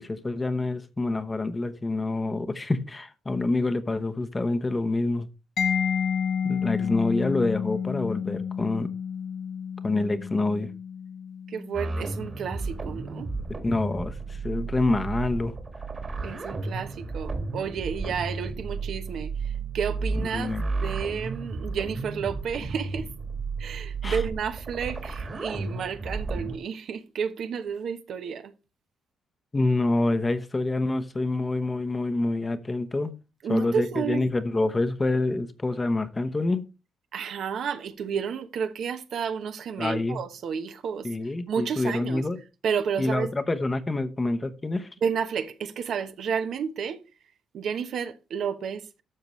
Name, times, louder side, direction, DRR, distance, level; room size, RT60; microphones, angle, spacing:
voice 1, 0.0-5.3 6.4-8.9 9.8-10.7 13.6-15.5 20.2-20.6 24.0-24.2 29.5-33.1 33.5-36.6 39.8-40.2 41.0-42.4 43.0-44.9, left 2 dB, 25° left, 1.0 m, -27 dB
Mallet percussion, 5.6-13.1, left 7 dB, 60° left, 1.1 m, -31 dB
voice 2, 11.5-13.3 16.2-20.5 20.8-23.0 23.6-28.5 33.4-34.2 37.1-41.1 41.5-42.3 42.6-43.3 45.0-47.0 47.5-48.8, right 7 dB, 65° right, 1.0 m, -31 dB
sound 1, 11.7-26.6, right 3 dB, 35° right, 1.8 m, -33 dB
12.0 x 6.8 x 3.1 m
cardioid pair, 90°, 0 cm